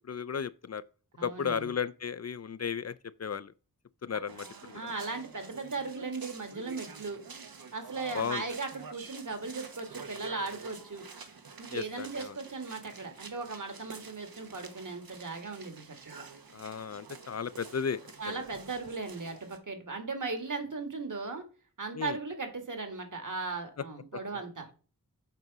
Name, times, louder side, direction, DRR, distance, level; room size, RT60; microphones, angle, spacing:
voice 1, 0.1-0.8 1.2-3.5 4.0-4.8 8.1-8.4 11.7-12.3 16.5-18.0 18.3-18.4 21.9-22.2, left 6 dB, 50° left, 0.4 m, -34 dB
voice 2, 1.2-1.7 4.7-7.2 7.7-11.1 11.6-16.3 18.2-21.4 21.8-24.7, right 3 dB, 60° right, 2.1 m, -37 dB
sound 1, 4.3-19.6, right 5 dB, 85° right, 1.2 m, -48 dB
8.1 x 3.9 x 6.0 m
wide cardioid pair, 70°, 35 cm